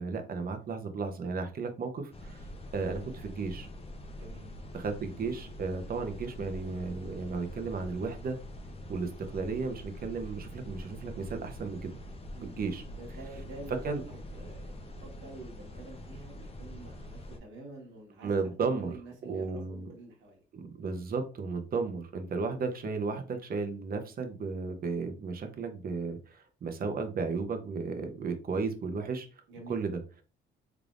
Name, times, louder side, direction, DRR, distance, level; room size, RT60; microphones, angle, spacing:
voice 1, 0.0-2.5 2.7-3.7 4.7-8.4 8.9-12.0 12.4-12.8 13.8-14.0 18.2-18.9 19.2-19.9 20.5-29.3 29.7-30.0, right 4 dB, 50° right, 6 dB, 0.8 m, -34 dB
sound 1, 2.1-17.4, left 1 dB, 30° left, 0.7 m, -44 dB
voice 2, 4.1-4.5 12.3-20.4 21.7-21.8 29.5-29.9, right 2 dB, 70° right, -1 dB, 1.5 m, -48 dB
3.6 x 3.4 x 2.5 m, 0.36 s
cardioid pair, 90°, 20 cm